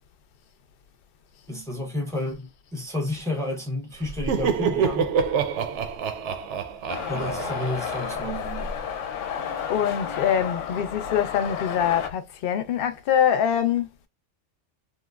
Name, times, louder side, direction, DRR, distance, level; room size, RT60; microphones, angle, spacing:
voice 1, 1.5-5.1 7.1-8.7, left 2 dB, 5° left, 0.5 m, -31 dB
Laughter, 4.0-8.7, right 6 dB, 75° right, 0.8 m, -27 dB
sound 1, 6.9-12.1, left 8 dB, 90° left, 0.9 m, -32 dB
voice 2, 9.7-13.9, left 8 dB, 60° left, 0.7 m, -24 dB
3.1 x 2.0 x 2.3 m
omnidirectional pair, 1.2 m